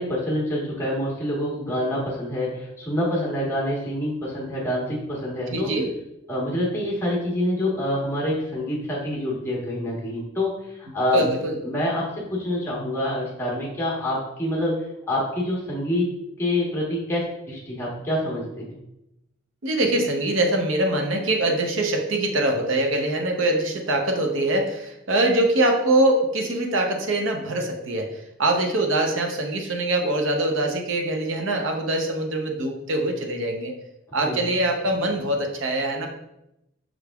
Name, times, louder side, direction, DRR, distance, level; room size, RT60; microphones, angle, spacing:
voice 1, 0.0-5.7 6.3-10.5 10.8-11.3 11.6-16.1 16.4-18.7 34.2-34.5, left 1 dB, 15° left, -5 dB, 1.1 m, -26 dB
voice 2, 5.5-5.9 11.1-11.6 19.6-33.7 34.1-36.1, right 1 dB, 70° right, 3 dB, 0.6 m, -23 dB
6.1 x 3.4 x 2.3 m, 0.87 s
head